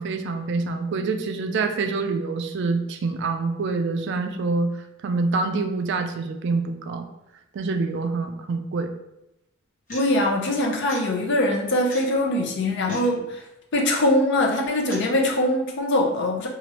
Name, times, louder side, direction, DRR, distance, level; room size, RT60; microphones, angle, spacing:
voice 1, 0.0-4.7 5.0-7.1 7.5-8.9, right 3 dB, 55° right, 5 dB, 0.3 m, -26 dB
voice 2, 9.9-13.4 13.7-16.5, left 1 dB, 55° left, 0 dB, 0.5 m, -22 dB
sound 1, 9.9-10.1 10.9-11.1 11.9-12.0 12.9-13.1 13.9-14.1 14.9-15.0, left 1 dB, 40° left, 1.0 m, -38 dB
3.0 x 2.4 x 2.9 m, 0.90 s
head